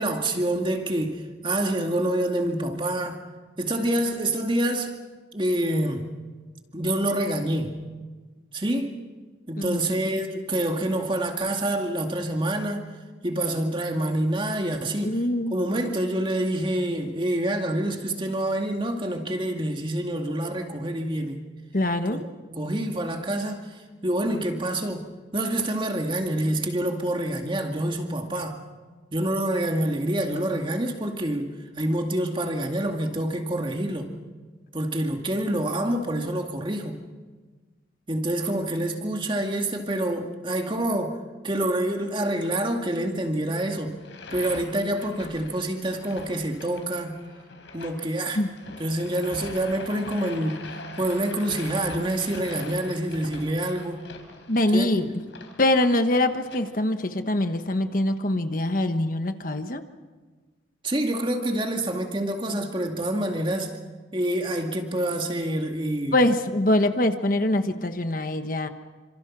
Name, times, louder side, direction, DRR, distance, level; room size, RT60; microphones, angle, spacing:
voice 1, 0.0-3.2 3.6-4.9 5.3-6.0 6.7-7.8 8.5-8.9 9.5-12.8 13.2-15.2 15.5-21.4 22.1-23.6 24.0-25.1 25.3-28.6 29.1-31.5 31.8-34.1 34.7-37.0 38.1-43.9 44.3-47.2 47.7-48.4 48.8-50.6 51.0-54.1 54.7-54.9 60.8-63.8 64.1-66.2, right 1 dB, 25° right, 2.3 m, -27 dB
voice 2, 15.0-15.6 21.7-22.2 48.4-48.5 54.5-55.1 55.6-59.8 66.1-68.7, left 1 dB, 45° left, 1.2 m, -23 dB
sound 1, 43.9-56.6, left 3 dB, 70° left, 4.3 m, -43 dB
28.5 x 26.0 x 6.2 m
head